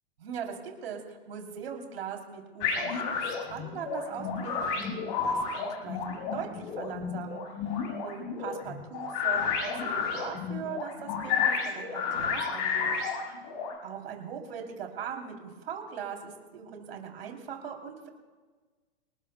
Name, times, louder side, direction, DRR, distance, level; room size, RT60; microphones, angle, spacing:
voice 1, 0.2-3.1 3.4-7.7 8.0-12.9 13.8-18.1, right 7 dB, 70° right, 2 dB, 3.4 m, -40 dB
sound 1, 2.6-13.7, left 6 dB, 45° left, 6.5 m, -31 dB
27.0 x 19.5 x 2.3 m, 1.4 s
hypercardioid pair, 115°, 31 cm